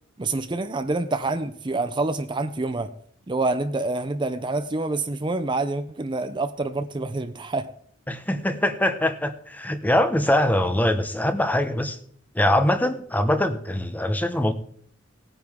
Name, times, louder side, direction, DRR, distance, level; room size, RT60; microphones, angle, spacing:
voice 1, 0.2-2.9 3.3-7.7, right 2 dB, 25° right, 0.5 m, -27 dB
voice 2, 8.1-12.0 12.3-14.5, left 1 dB, 10° left, 0.9 m, -23 dB
18.5 x 9.3 x 3.6 m
head